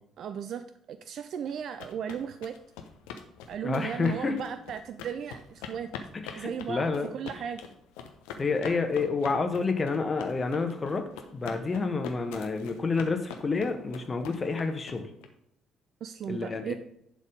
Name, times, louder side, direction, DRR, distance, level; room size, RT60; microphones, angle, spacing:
voice 1, 0.2-2.6 3.5-5.9 6.3-6.9 7.1-7.6 16.0-16.7, right 8 dB, 50° right, 11 dB, 0.4 m, -36 dB
sound 1, 1.5-15.3, left 7 dB, 65° left, 0.8 m, -43 dB
voice 2, 3.6-4.4 6.2-7.1 8.4-11.0 11.3-15.1 16.3-16.7, left 4 dB, 30° left, 6 dB, 1.4 m, -29 dB
11.0 x 4.1 x 5.2 m, 0.76 s
figure-of-eight pair, 50°, 0 cm